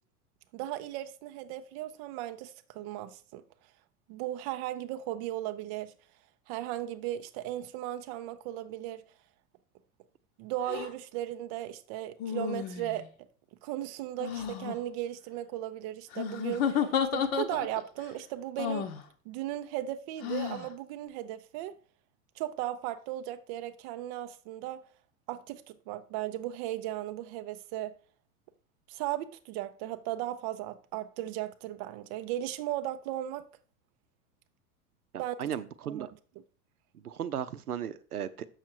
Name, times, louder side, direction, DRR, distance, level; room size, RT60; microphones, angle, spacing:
voice 1, 0.5-3.4 4.1-5.9 6.5-9.0 10.4-13.1 13.6-18.9 19.3-21.8 22.4-24.8 25.3-27.9 28.9-33.5 35.2-35.5 35.8-36.1, right 13 dB, 25° right, 0.4 m, -36 dB
sound 1, 10.6-10.9 12.2-13.1 14.2-14.8 16.1-17.9 18.6-19.0 20.2-20.7, left 8 dB, 40° left, 0.9 m, -32 dB
voice 2, 35.1-36.1 37.0-38.5, right 9 dB, 75° right, 0.7 m, -36 dB
7.1 x 6.3 x 4.5 m
figure-of-eight pair, 85°, 46 cm